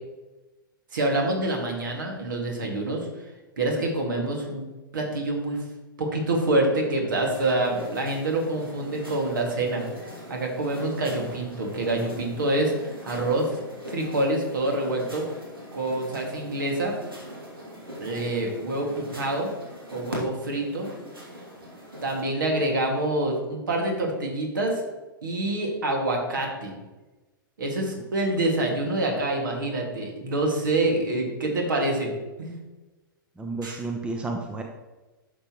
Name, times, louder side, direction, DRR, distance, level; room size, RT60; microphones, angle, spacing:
voice 1, 0.9-3.1 3.6-4.7 4.9-5.6 6.0-13.6 13.9-15.3 15.7-17.0 18.0-19.5 19.9-20.9 22.0-24.8 25.2-26.7 27.6-32.1 32.4-32.5 33.6-33.8, right 2 dB, 65° right, 1 dB, 2.1 m, -26 dB
sound 1, 7.3-22.2, equal, 80° right, 2.4 m, -41 dB
voice 2, 33.4-34.6, right 3 dB, 10° right, 3 dB, 0.7 m, -31 dB
11.0 x 6.6 x 3.1 m, 1.1 s
figure-of-eight pair, 105°, 12 cm